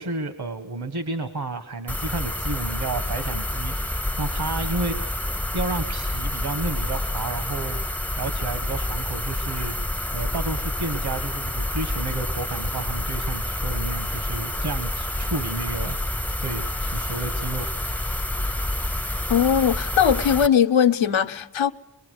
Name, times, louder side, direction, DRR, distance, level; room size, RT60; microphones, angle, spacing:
voice 1, 0.0-17.7, right 3 dB, 55° right, 1.8 m, -31 dB
sound 1, 1.9-20.5, left 1 dB, 5° left, 0.7 m, -28 dB
voice 2, 19.3-21.7, left 8 dB, 80° left, 1.0 m, -19 dB
23.5 x 22.0 x 6.6 m
cardioid pair, 55°, 46 cm